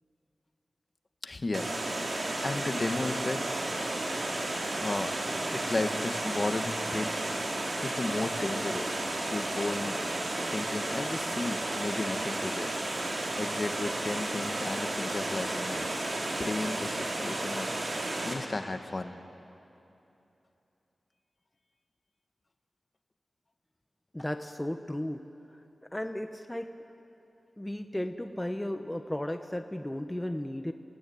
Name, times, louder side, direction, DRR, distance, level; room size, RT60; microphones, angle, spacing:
voice 1, 1.2-1.8 2.1-3.4 4.4-5.1 5.5-7.1 7.8-10.0 10.5-12.7 13.4-15.9 16.4-17.7 18.2-19.1, left 2 dB, 45° left, 7 dB, 1.5 m, -34 dB
Water, 1.5-18.3, right 2 dB, 65° right, 4.0 m, -33 dB
voice 2, 24.1-25.2 25.9-26.7 27.6-30.7, left 1 dB, 15° left, 6 dB, 1.1 m, -34 dB
29.0 x 17.5 x 9.5 m, 2.9 s
cardioid pair, 55°, 0 cm